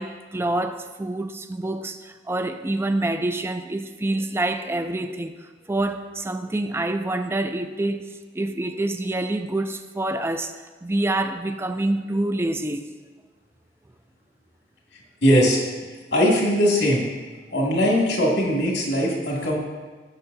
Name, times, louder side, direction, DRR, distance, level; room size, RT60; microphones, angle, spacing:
voice 1, 0.0-5.3 5.7-8.0 8.3-10.5 10.8-12.8, right 2 dB, 15° right, 0.4 m, -26 dB
voice 2, 15.2-15.6 16.1-17.1 17.5-19.6, equal, 85° left, 2.2 m, -20 dB
15.0 x 6.8 x 2.7 m
head